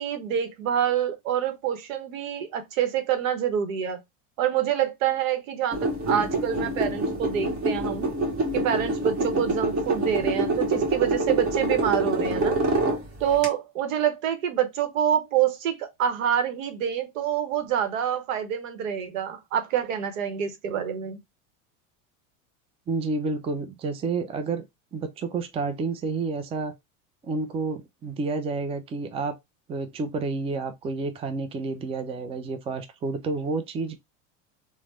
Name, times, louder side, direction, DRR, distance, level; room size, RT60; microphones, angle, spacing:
voice 1, 0.0-4.0 4.4-8.1 8.5-12.6 13.2-21.2, right 9 dB, 90° right, 0.9 m, -26 dB
sound 1, 5.7-13.4, right 2 dB, 35° right, 1.3 m, -26 dB
voice 2, 22.9-24.6 24.9-26.7 27.2-29.4 29.7-34.0, right 3 dB, 15° right, 0.4 m, -30 dB
3.2 x 2.1 x 3.0 m
supercardioid pair, 115°, 39 cm